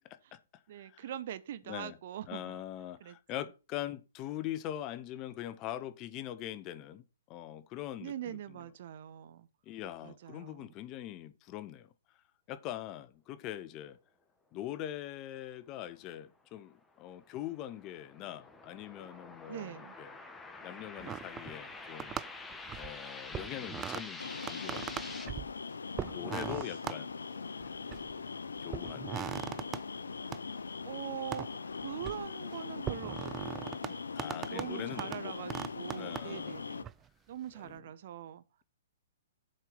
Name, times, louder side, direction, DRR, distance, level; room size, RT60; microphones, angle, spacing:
voice 1, 0.7-2.6 3.0-3.2 8.0-9.5 10.0-10.7 19.5-20.0 26.5-26.8 30.5-34.1 34.5-36.9 37.3-38.6, right 11 dB, 55° right, 0.8 m, -43 dB
voice 2, 2.3-7.0 7.3-8.4 9.7-11.9 12.5-14.0 14.5-20.1 20.6-22.2 22.8-25.0 25.3-25.5 26.1-27.6 28.6-29.1 34.1-35.3 36.0-36.6 37.6-37.7, left 12 dB, 30° left, 0.8 m, -42 dB
sound 1, 16.9-25.3, left 3 dB, 10° left, 1.3 m, -47 dB
sound 2, 21.0-21.7 22.0-23.0 23.3-24.0 24.4-25.5 26.0-27.0 27.6-28.2 28.7-29.8 30.3-30.4 31.3-31.5 31.8-32.2 32.8-33.9 34.2-34.7 35.0-35.2 35.5-36.2 36.8-36.9, right 10 dB, 20° right, 0.4 m, -39 dB
sound 3, 24.2-36.8, left 5 dB, 80° left, 0.7 m, -41 dB
7.5 x 4.6 x 6.7 m
figure-of-eight pair, 120°, 0 cm